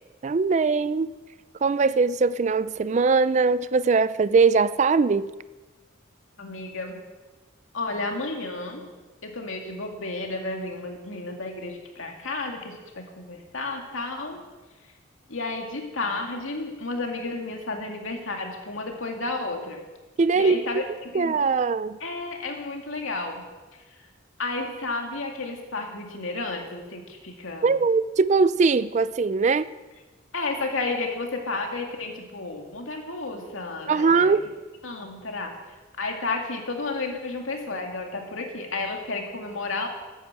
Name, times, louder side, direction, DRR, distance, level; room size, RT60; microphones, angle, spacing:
voice 1, 0.2-1.1 1.6-5.3 20.2-20.6 21.1-22.0 27.6-29.7 33.9-34.4, right 4 dB, 35° right, 0.3 m, -21 dB
voice 2, 6.4-7.0 7.7-8.9 9.2-14.4 15.3-19.8 20.3-21.4 22.0-23.5 23.7-24.1 24.4-27.8 30.3-34.4 34.8-35.6 36.0-39.9, left 3 dB, 85° left, 2.3 m, -32 dB
11.5 x 9.8 x 7.5 m
head